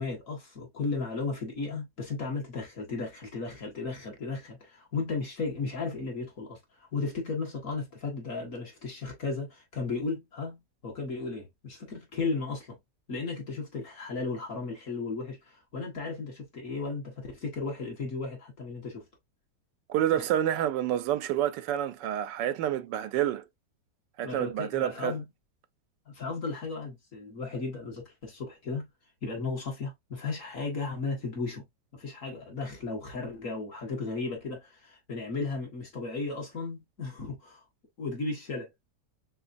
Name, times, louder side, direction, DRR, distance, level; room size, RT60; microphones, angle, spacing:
voice 1, 0.0-6.6 6.9-12.8 13.1-19.0 20.2-20.3 24.2-25.3 26.1-28.9 29.2-31.6 31.9-37.6 38.0-38.7, left 3 dB, 50° left, 1.9 m, -35 dB
voice 2, 19.9-23.4 24.2-25.2, right 11 dB, 85° right, 1.2 m, -28 dB
4.0 x 3.9 x 2.5 m
omnidirectional pair, 1.9 m